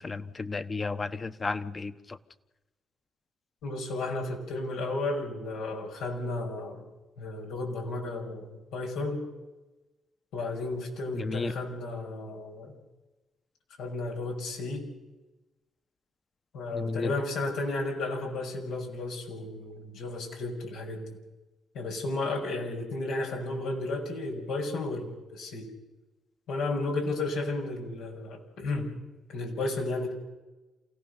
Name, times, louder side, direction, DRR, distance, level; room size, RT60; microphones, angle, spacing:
voice 1, 0.0-2.2 11.1-11.5 16.7-17.1, left 3 dB, 40° left, 12 dB, 1.2 m, -33 dB
voice 2, 3.6-6.8 7.2-9.3 10.3-12.8 13.8-14.9 16.5-21.1 21.7-25.7 26.5-28.9 29.3-30.1, left 2 dB, 80° left, 0 dB, 5.9 m, -33 dB
28.0 x 17.0 x 6.7 m, 1.1 s
hypercardioid pair, 50°, 0 cm